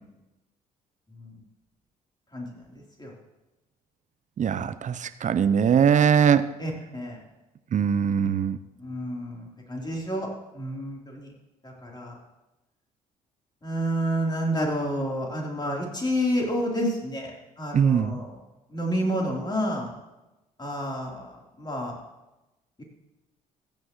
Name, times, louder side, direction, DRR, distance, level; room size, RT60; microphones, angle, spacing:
voice 1, 4.4-6.5 7.7-8.6 17.7-18.2, right 7 dB, 40° right, 14 dB, 0.6 m, -21 dB
voice 2, 6.6-7.2 8.8-10.3 10.5-11.3 11.6-12.1 13.6-17.3 17.6-18.3 18.7-19.9 20.6-21.3 21.6-21.9, equal, 25° left, -1 dB, 3.5 m, -29 dB
15.0 x 9.0 x 3.1 m, 1.0 s
hypercardioid pair, 50°, 19 cm